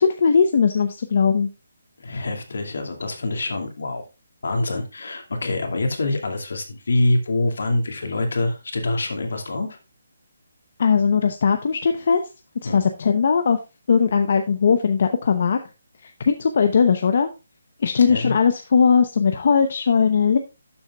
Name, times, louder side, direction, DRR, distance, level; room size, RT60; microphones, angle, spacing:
voice 1, 0.0-1.5 10.8-12.2 12.7-13.6 13.9-15.6 16.0-17.3 17.8-20.4, left 6 dB, 45° left, 7 dB, 0.8 m, -19 dB
voice 2, 2.0-4.0 4.4-9.8 12.6-12.9 18.1-18.3, left 2 dB, 65° left, 4 dB, 2.4 m, -25 dB
12.0 x 7.2 x 2.4 m, 0.28 s
hypercardioid pair, 175°, 0 cm